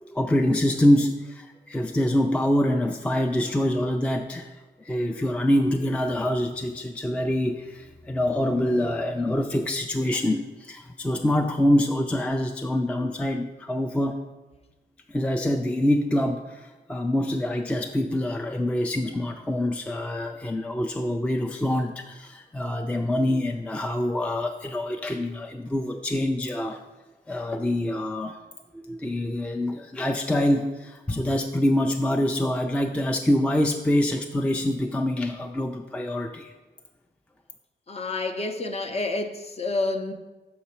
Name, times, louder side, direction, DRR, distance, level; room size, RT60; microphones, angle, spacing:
voice 1, 0.0-14.2 15.1-26.8 27.3-28.4 28.7-36.5, left 1 dB, 5° left, 0.4 m, -25 dB
voice 2, 37.9-40.1, left 2 dB, 35° left, 0.7 m, -29 dB
6.7 x 4.1 x 5.6 m
cardioid pair, 100°, 18 cm